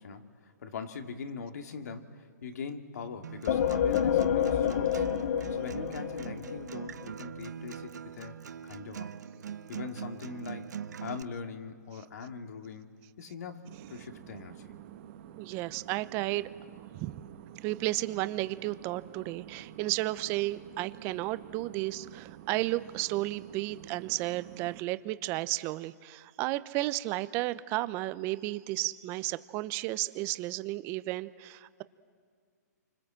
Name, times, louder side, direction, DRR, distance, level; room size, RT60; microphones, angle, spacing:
voice 1, 0.0-5.1 5.5-9.1 9.7-14.7, left 5 dB, 65° left, 5 dB, 2.3 m, -42 dB
Acoustic guitar, 3.2-11.2, right 8 dB, 75° right, 0.9 m, -42 dB
sound 1, 3.5-7.1, left 9 dB, 50° left, 0.9 m, -28 dB
sound 2, 13.6-24.8, right 11 dB, 45° right, 1.2 m, -49 dB
voice 2, 15.4-16.5 16.9-17.1 17.6-31.8, right 18 dB, 25° right, 15 dB, 0.7 m, -33 dB
28.0 x 25.5 x 7.7 m, 2.1 s
hypercardioid pair, 155°, 9 cm